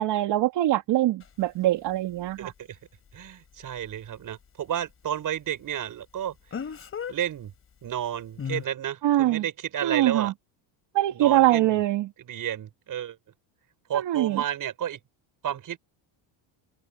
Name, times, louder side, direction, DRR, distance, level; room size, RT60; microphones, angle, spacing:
voice 1, 0.0-2.5 9.0-9.4 9.8-10.3 10.9-12.1 13.9-14.4, right 14 dB, 55° right, 3.0 m, -23 dB
Speech, 1.2-1.3 6.5-7.1 8.4-8.6, left 7 dB, 25° left, 4.3 m, -33 dB
voice 2, 2.4-2.8 3.1-6.6 7.1-7.5 7.8-10.3 11.1-11.8 12.2-13.2 13.9-15.0 15.4-15.8, right 10 dB, 40° right, 6.5 m, -32 dB
cardioid pair, 165°, 49 cm